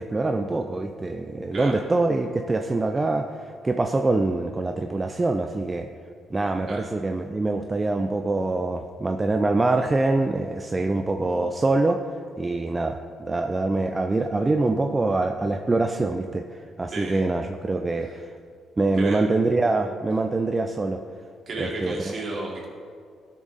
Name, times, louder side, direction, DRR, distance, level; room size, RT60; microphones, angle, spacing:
voice 1, 0.0-5.9 6.3-12.0 12.4-18.3 18.8-21.0 21.6-22.2, right 2 dB, 20° right, 5 dB, 0.5 m, -24 dB
voice 2, 21.5-22.7, right 2 dB, 50° right, -2 dB, 2.5 m, -32 dB
13.0 x 6.2 x 4.1 m, 2.2 s
cardioid pair, 90°, 0 cm